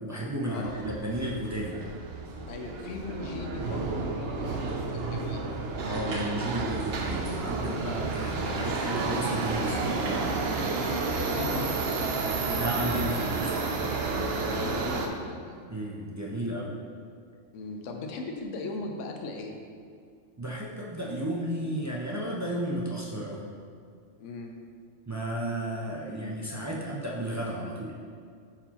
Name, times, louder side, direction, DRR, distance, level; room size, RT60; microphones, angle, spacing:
voice 1, 0.0-1.8 5.8-10.0 12.6-13.5 15.7-16.8 20.4-23.4 25.1-27.9, right 1 dB, 25° right, -4 dB, 0.4 m, -33 dB
Subway metro underground, 0.6-15.1, right 3 dB, 60° right, 0.8 m, -31 dB
voice 2, 2.5-5.5 11.1-11.7 14.5-15.6 17.5-19.5 24.2-24.5, left 3 dB, 80° left, 2 dB, 1.0 m, -38 dB
sound 1, 4.2-4.3 4.7-5.2 5.8-6.4 6.8-7.4 8.1-10.3, right 2 dB, 90° right, 1.5 m, -44 dB
9.0 x 4.1 x 2.9 m, 2.3 s
omnidirectional pair, 1.3 m